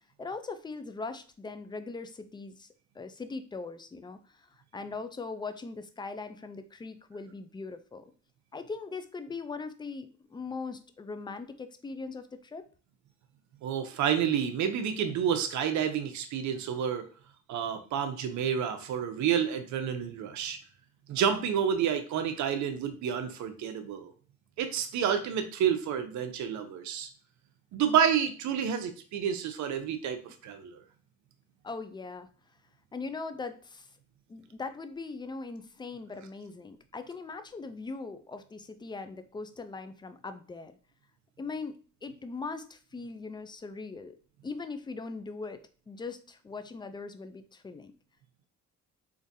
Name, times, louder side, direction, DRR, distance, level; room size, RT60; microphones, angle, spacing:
voice 1, 0.2-2.7 3.0-8.0 8.5-12.6 31.6-32.3 32.9-33.9 34.3-40.8 41.4-41.8 42.0-44.2 44.4-47.9, left 4 dB, 15° left, 10 dB, 0.3 m, -40 dB
voice 2, 13.6-17.1 17.5-20.6 21.1-24.1 24.6-27.1 27.7-30.8, right 8 dB, 70° right, 7 dB, 0.6 m, -29 dB
3.8 x 2.6 x 2.6 m, 0.39 s
cardioid pair, 90°, 30 cm